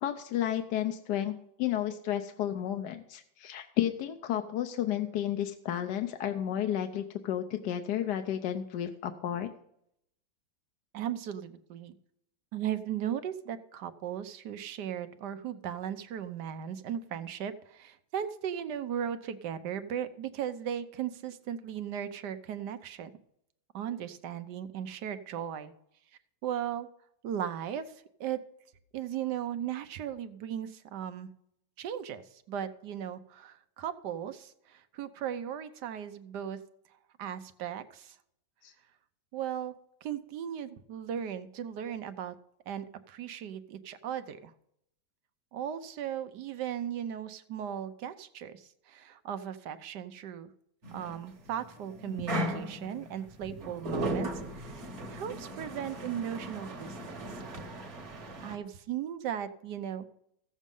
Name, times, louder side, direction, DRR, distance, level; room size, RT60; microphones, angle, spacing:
voice 1, 0.0-9.5 38.6-38.7, left 11 dB, 70° left, 6 dB, 1.2 m, -32 dB
voice 2, 10.9-12.0 12.5-23.1 23.7-25.7 26.4-26.9 27.2-28.4 28.9-31.3 31.8-36.6 37.2-38.2 39.3-39.7 40.0-42.4 42.7-44.5 45.5-50.5 50.9-57.2 58.4-60.1, right 9 dB, 70° right, 11 dB, 1.3 m, -37 dB
sound 1, 50.8-58.6, right 1 dB, 40° right, 1.5 m, -37 dB
15.0 x 7.3 x 5.4 m, 0.76 s
omnidirectional pair, 2.0 m